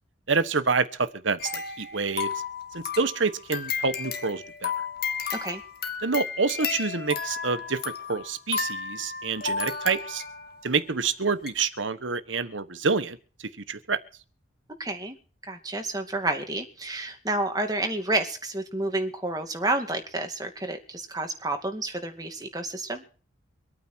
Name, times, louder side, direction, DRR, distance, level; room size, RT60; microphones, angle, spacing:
voice 1, 0.3-2.3 2.7-4.7 6.0-7.8 8.1-10.2 10.6-13.2 13.7-14.0, right 4 dB, 85° right, 12 dB, 1.3 m, -27 dB
sound 1, 1.4-10.6 11.0-11.1 11.5-11.6, left 6 dB, 55° left, 2.0 m, -33 dB
voice 2, 5.3-5.6 14.8-15.2 15.5-23.0, right 2 dB, 20° right, 5 dB, 2.4 m, -30 dB
24.5 x 9.2 x 4.6 m, 0.38 s
head